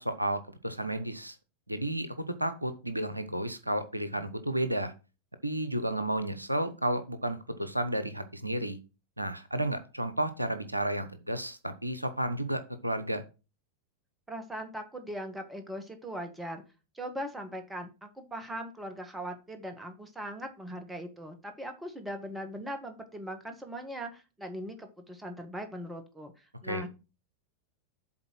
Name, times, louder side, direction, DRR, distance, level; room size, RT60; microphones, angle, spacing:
voice 1, 0.0-1.4 1.7-4.9 5.4-8.8 9.2-13.2 26.6-26.8, right 1 dB, 85° right, 11 dB, 0.7 m, -32 dB
voice 2, 14.3-16.6 16.9-26.9, equal, 5° right, 6 dB, 1.7 m, -40 dB
7.5 x 4.1 x 6.2 m, 0.31 s
figure-of-eight pair, 90°, 0 cm